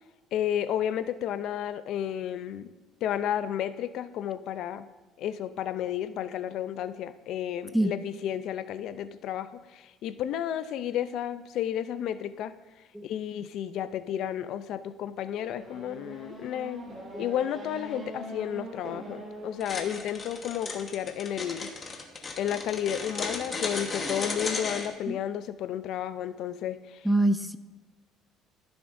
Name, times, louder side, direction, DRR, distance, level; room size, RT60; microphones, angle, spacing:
voice 1, 0.3-2.7 3.0-4.9 5.2-12.5 13.0-16.8 17.2-21.7 22.4-27.0, left 10 dB, 60° left, 13 dB, 0.4 m, -32 dB
Race car auto racing / Accelerating revving vroom, 15.4-20.5, right 2 dB, 20° right, 2.6 m, -43 dB
sound 1, 19.6-24.9, left 4 dB, 30° left, 1.2 m, -34 dB
voice 2, 27.0-27.6, right 1 dB, ahead, 12 dB, 0.4 m, -25 dB
14.5 x 6.9 x 2.6 m, 1.2 s
cardioid pair, 120°, 0 cm